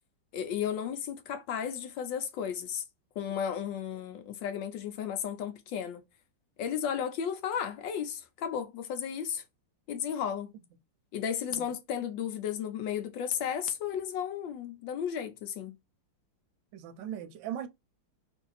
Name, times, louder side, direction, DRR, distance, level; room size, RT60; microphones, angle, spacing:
voice 1, 0.3-2.8 3.2-6.0 6.6-9.4 9.9-10.5 11.1-15.7, left 8 dB, 70° left, 1.2 m, -34 dB
voice 2, 16.7-17.7, right 10 dB, 70° right, 1.3 m, -39 dB
3.2 x 2.6 x 3.9 m
omnidirectional pair, 2.4 m